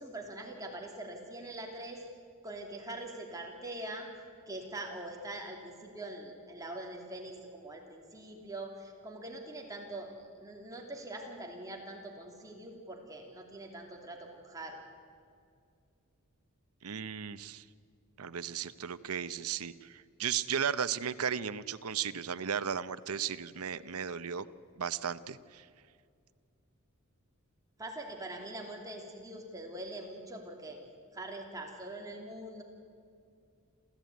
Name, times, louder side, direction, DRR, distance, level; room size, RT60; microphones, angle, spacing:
voice 1, 0.0-2.0 2.4-4.1 4.5-10.1 10.4-14.8 27.8-30.8 31.1-32.6, right 1 dB, 15° right, 1 dB, 2.9 m, -43 dB
voice 2, 16.8-17.6 18.2-24.5 24.8-25.6, right 7 dB, 80° right, 14 dB, 0.8 m, -35 dB
28.0 x 14.5 x 9.3 m, 2.3 s
head